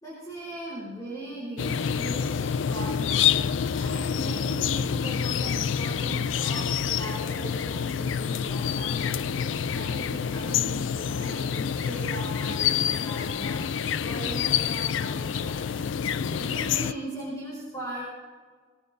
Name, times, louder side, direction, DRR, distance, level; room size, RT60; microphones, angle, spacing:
voice 1, 0.0-18.0, right 1 dB, 20° left, -6 dB, 4.4 m, -39 dB
sound 1, 1.6-16.9, left 7 dB, 85° left, 0.4 m, -27 dB
21.0 x 18.5 x 2.7 m, 1.5 s
head